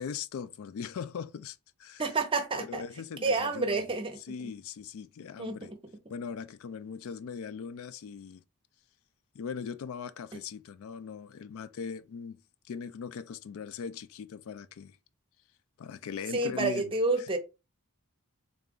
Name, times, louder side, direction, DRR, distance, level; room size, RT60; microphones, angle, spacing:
voice 1, 0.0-2.0 2.6-3.8 4.2-5.7 6.1-8.4 9.3-12.4 12.6-15.0 15.8-16.9 17.2-17.3, left 6 dB, 65° left, 0.3 m, -40 dB
voice 2, 2.0-2.8 3.2-4.2 5.4-5.8 16.3-17.4, right 3 dB, 25° right, 0.8 m, -29 dB
3.8 x 2.4 x 3.6 m
head